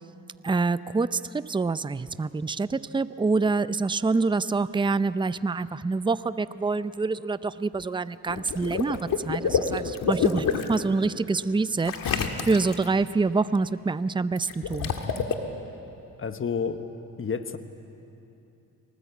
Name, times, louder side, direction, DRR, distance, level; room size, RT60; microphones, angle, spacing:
voice 1, 0.4-14.9, right 3 dB, 15° right, 15 dB, 0.6 m, -26 dB
Water / Liquid, 8.3-10.8 11.8-12.9 14.4-15.3, left 6 dB, 75° left, 1.8 m, -27 dB
voice 2, 16.2-16.9 17.2-17.6, left 6 dB, 40° left, 9 dB, 1.3 m, -29 dB
23.5 x 19.5 x 8.3 m, 2.8 s
cardioid pair, 70°, 34 cm